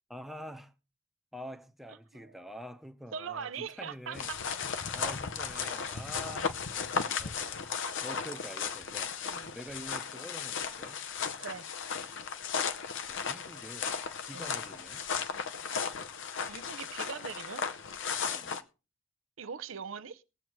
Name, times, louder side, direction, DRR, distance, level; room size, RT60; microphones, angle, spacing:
voice 1, 0.1-0.7 1.3-4.3 4.9-6.5 7.2-7.7 8.0-9.2 9.5-11.0 13.1-15.0 18.2-18.5, equal, ahead, 0.8 m, -46 dB
voice 2, 3.1-4.4 5.5-5.8 8.3-8.4 9.2-9.5 11.4-11.7 14.3-14.5 16.5-17.6 19.4-20.2, right 6 dB, 75° right, 0.6 m, -41 dB
sound 1, 4.1-18.6, left 6 dB, 65° left, 0.7 m, -35 dB
20.5 x 7.7 x 3.1 m
head